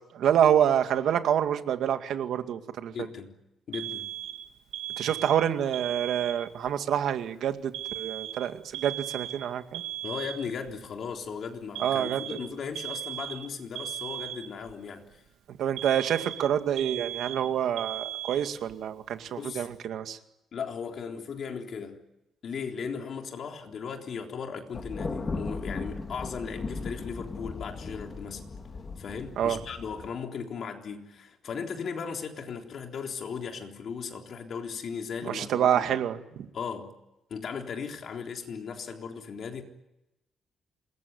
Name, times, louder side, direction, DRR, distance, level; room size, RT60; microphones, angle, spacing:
voice 1, 0.1-2.9 5.0-9.8 11.8-12.2 15.6-20.2 29.4-29.6 35.3-36.5, right 9 dB, 60° right, 2.2 m, -27 dB
voice 2, 2.9-3.4 3.7-4.1 10.0-15.2 19.4-19.7 20.5-22.0 22.4-28.4 29.0-35.9 36.5-36.9 37.3-39.6, left 6 dB, 45° left, 3.7 m, -37 dB
Alarm, 3.7-6.7 7.7-10.7 11.8-14.7 15.8-18.7, right 12 dB, 85° right, 2.0 m, -37 dB
Thunder, 24.7-30.1, left 3 dB, 25° left, 2.5 m, -37 dB
27.5 x 21.5 x 9.6 m
cardioid pair, 175°, 0 cm